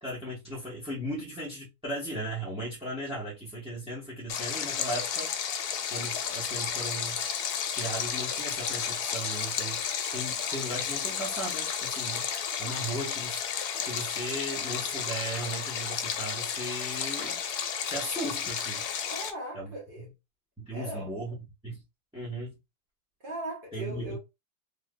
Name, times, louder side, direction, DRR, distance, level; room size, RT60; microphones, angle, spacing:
voice 1, 0.0-5.3 5.9-7.2 7.7-13.4 13.8-17.4 17.9-18.9 19.5-20.1 20.6-21.8 22.1-22.6 23.7-24.2, right 1 dB, 5° right, 0.8 m, -37 dB
Stream, 4.3-19.3, left 7 dB, 90° left, 1.2 m, -32 dB
voice 2, 12.8-13.1 19.1-20.0 20.7-21.1 23.2-24.2, right 1 dB, 35° right, 1.2 m, -39 dB
3.4 x 2.8 x 2.3 m
omnidirectional pair, 1.7 m